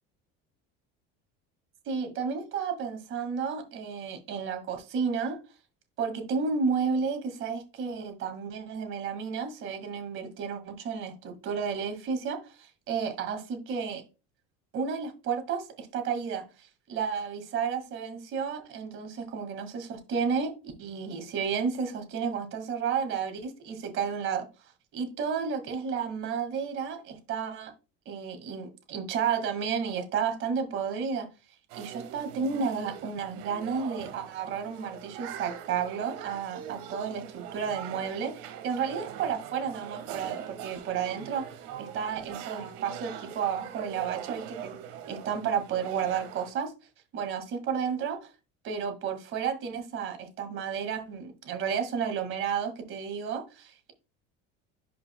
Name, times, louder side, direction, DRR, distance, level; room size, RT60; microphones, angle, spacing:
voice 1, 1.9-5.4 6.0-14.0 14.7-20.5 20.8-24.5 24.9-27.7 28.1-31.3 31.7-44.8 45.1-46.7 47.1-48.3 48.6-53.9, right 6 dB, 45° right, 2.1 m, -32 dB
sound 1, 31.7-46.5, right 9 dB, 85° right, 1.7 m, -42 dB
11.5 x 5.6 x 2.3 m
cardioid pair, 165°, 29 cm